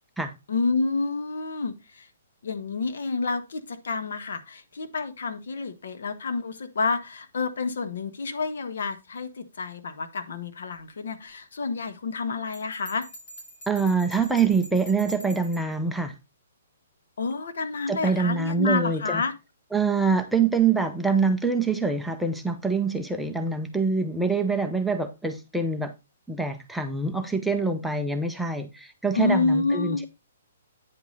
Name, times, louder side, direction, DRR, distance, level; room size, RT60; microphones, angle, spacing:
voice 1, 0.5-2.1 2.4-13.0 17.2-19.3 29.1-30.0, left 4 dB, 70° left, 1.3 m, -29 dB
Bell, 12.5-15.7, equal, 35° left, 5.1 m, -45 dB
voice 2, 13.7-16.1 17.9-19.2 19.7-25.9 26.3-30.1, right 4 dB, ahead, 0.6 m, -25 dB
9.2 x 5.3 x 3.9 m
hypercardioid pair, 160°, 0 cm